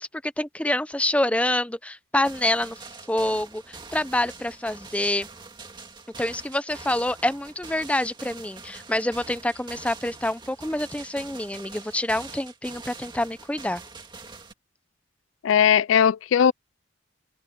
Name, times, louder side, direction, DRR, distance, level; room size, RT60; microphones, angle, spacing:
voice 1, 0.0-5.3 6.2-13.8, left 1 dB, 5° left, 0.6 m, -27 dB
sound 1, 2.2-14.5, right 4 dB, 20° right, 2.2 m, -44 dB
voice 2, 15.4-16.5, left 8 dB, 75° left, 0.3 m, -18 dB
open air
head